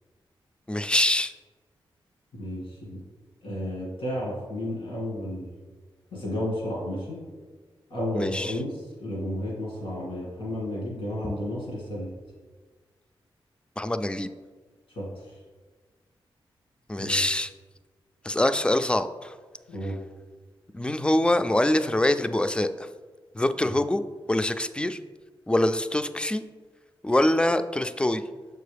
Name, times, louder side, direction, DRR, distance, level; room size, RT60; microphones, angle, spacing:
voice 1, 0.7-1.3 8.2-8.6 11.2-11.3 13.8-14.3 16.9-17.5 18.2-19.3 20.7-22.9 23.3-24.0 24.3-25.0 25.5-26.4 27.0-28.2, left 1 dB, 10° left, 10 dB, 0.3 m, -24 dB
voice 2, 2.3-3.0 3.4-5.5 6.1-7.2 7.9-12.1 15.0-15.4 17.0-17.2 19.7-20.0 23.6-23.7, left 1 dB, 85° left, -5 dB, 1.8 m, -32 dB
6.4 x 4.6 x 3.4 m, 1.4 s
cardioid pair, 60°, 9 cm